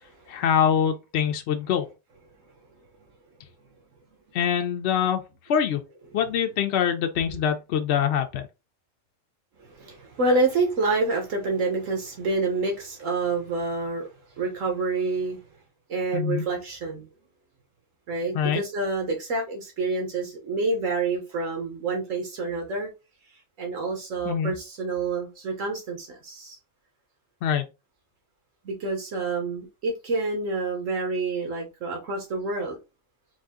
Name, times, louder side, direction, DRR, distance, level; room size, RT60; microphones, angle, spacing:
voice 1, 0.3-1.8 4.3-5.2 5.5-5.8 6.1-8.5 16.1-16.4 18.3-18.6 24.3-24.5 27.4-27.7, left 8 dB, 65° left, 0.8 m, -24 dB
voice 2, 9.6-14.1 14.4-15.4 15.9-17.1 18.1-22.9 23.6-26.6 28.6-32.7, right 3 dB, 75° right, 1.4 m, -28 dB
4.0 x 2.7 x 3.6 m
omnidirectional pair, 1.3 m